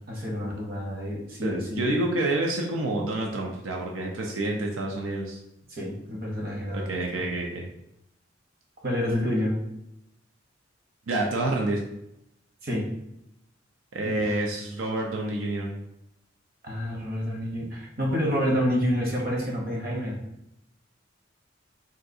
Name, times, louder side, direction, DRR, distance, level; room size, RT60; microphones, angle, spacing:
voice 1, 0.1-1.9 5.7-7.2 8.8-9.6 12.6-12.9 14.0-14.3 16.6-20.2, equal, 50° right, -2 dB, 0.8 m, -28 dB
voice 2, 1.4-5.4 6.7-7.6 11.1-11.8 13.9-15.8, right 2 dB, 90° right, 0 dB, 0.4 m, -28 dB
3.7 x 2.3 x 2.6 m, 0.84 s
head